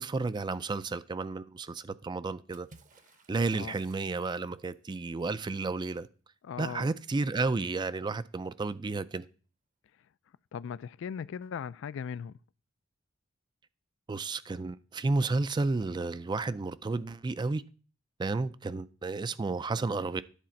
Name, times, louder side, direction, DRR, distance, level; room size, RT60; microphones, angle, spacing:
voice 1, 0.0-2.7 3.3-6.1 6.6-9.3 14.1-17.6 18.2-20.2, right 3 dB, 20° right, 0.3 m, -32 dB
Water / Splash splatter, 2.5-4.9, right 4 dB, 40° right, 0.8 m, -58 dB
voice 2, 6.4-6.9 10.5-12.4, left 7 dB, 65° left, 0.3 m, -38 dB
10.0 x 4.1 x 5.7 m
head